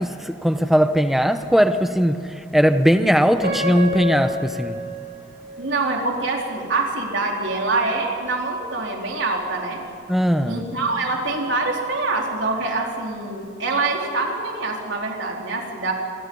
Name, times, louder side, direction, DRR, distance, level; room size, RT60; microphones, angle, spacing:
voice 1, 0.0-4.8 10.1-10.6, equal, ahead, 0.9 m, -19 dB
Piano, 3.4-6.4 7.0-7.1 7.8-8.0, left 2 dB, 55° right, 7.6 m, -29 dB
voice 2, 5.6-9.8 10.5-15.9, right 3 dB, 75° right, 4.1 m, -25 dB
27.5 x 23.5 x 5.5 m
head